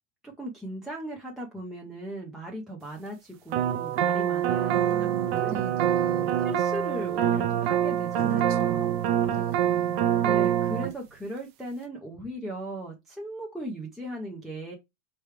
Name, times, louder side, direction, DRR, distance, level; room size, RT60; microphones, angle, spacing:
voice 1, 0.2-5.5 6.4-9.0 10.2-14.7, right 1 dB, ahead, 0.4 m, -38 dB
sound 1, 3.5-10.9, right 10 dB, 55° right, 0.7 m, -25 dB
voice 2, 4.7-6.4 8.1-8.9 9.3-10.1, right 7 dB, 35° right, 1.5 m, -38 dB
4.4 x 3.2 x 3.2 m
supercardioid pair, 150°, 37 cm